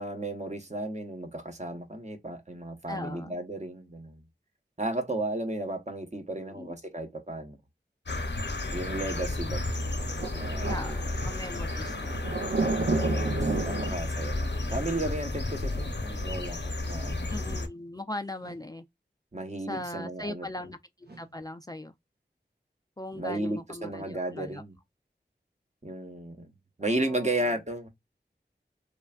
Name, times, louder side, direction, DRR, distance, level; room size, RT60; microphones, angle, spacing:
voice 1, 0.0-4.2 4.8-7.6 8.7-9.8 10.3-11.0 12.6-17.3 19.3-20.5 23.2-24.7 25.8-26.5 26.8-27.9, right 1 dB, 40° right, 0.9 m, -34 dB
voice 2, 2.9-3.4 6.4-6.8 10.7-12.1 13.4-14.0 17.3-18.8 19.7-21.9 23.0-24.6 26.8-27.6, left 1 dB, 20° left, 0.3 m, -39 dB
sound 1, 8.1-17.7, left 2 dB, 75° left, 0.8 m, -32 dB
sound 2, 8.9-13.9, right 3 dB, 85° right, 0.5 m, -32 dB
sound 3, 17.1-17.5 18.4-18.8 19.7-20.1 21.0-21.4, right 3 dB, 60° right, 0.9 m, -53 dB
3.2 x 2.2 x 2.3 m
wide cardioid pair, 50°, 18 cm